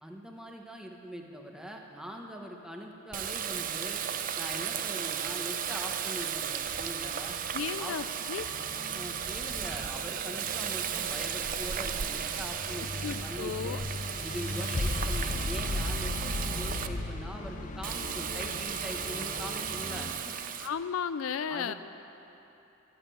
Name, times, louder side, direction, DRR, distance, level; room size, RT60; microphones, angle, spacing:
voice 1, 0.0-4.0 4.4-7.4 7.8-8.0 8.9-13.9 14.2-20.4 21.5-21.7, equal, 5° right, 1 dB, 1.1 m, -42 dB
Water tap faucet, 3.1-16.9 17.8-20.7, right 8 dB, 40° right, 0.5 m, -35 dB
voice 2, 7.5-8.5 13.0-13.8 20.6-21.7, left 7 dB, 85° left, 13 dB, 0.4 m, -34 dB
sound 1, 8.4-20.1, left 2 dB, 40° left, 0.7 m, -37 dB
12.5 x 8.9 x 8.6 m, 3.0 s
head